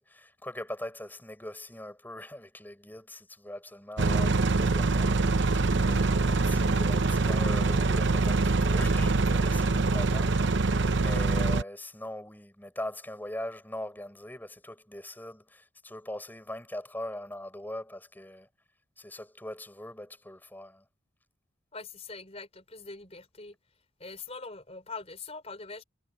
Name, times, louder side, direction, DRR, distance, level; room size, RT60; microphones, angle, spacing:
voice 1, 0.0-18.5 19.0-20.8, left 1 dB, 10° left, 5.7 m, -41 dB
sound 1, 4.0-11.6, right 3 dB, 60° right, 0.8 m, -24 dB
voice 2, 21.7-23.6 24.0-25.8, left 4 dB, 30° left, 4.4 m, -43 dB
head